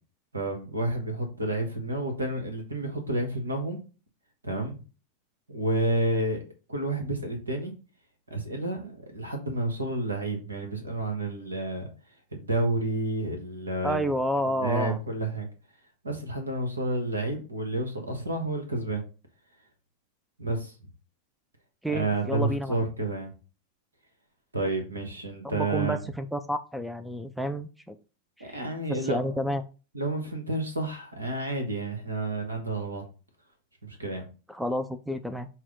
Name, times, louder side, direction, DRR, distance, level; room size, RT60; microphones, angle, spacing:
voice 1, 0.3-3.8 4.4-4.8 5.5-6.4 6.7-7.7 8.3-11.9 12.3-14.0 14.5-15.5 16.0-19.0 20.4-20.7 21.9-23.3 24.5-26.0 28.4-29.4 29.9-33.0 33.8-34.2, right 2 dB, 75° right, 5 dB, 1.1 m, -30 dB
voice 2, 13.8-15.0 21.8-22.8 25.4-28.0 28.5-28.6 28.9-29.6 34.5-35.5, equal, ahead, 9 dB, 0.4 m, -30 dB
6.0 x 2.1 x 3.6 m, 0.34 s
figure-of-eight pair, 90°, 0 cm